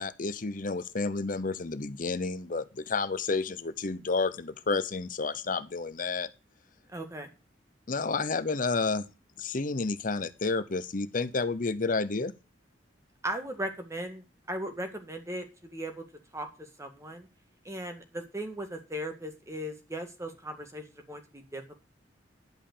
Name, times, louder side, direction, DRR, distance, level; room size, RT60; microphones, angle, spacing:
voice 1, 0.0-6.3 7.9-9.1 9.4-12.3, left 3 dB, 45° left, 0.8 m, -30 dB
voice 2, 6.9-7.3 13.2-15.4 15.7-16.0 16.3-16.5 16.8-17.3 17.7-21.8, right 1 dB, 15° right, 1.9 m, -37 dB
11.0 x 5.6 x 6.7 m
head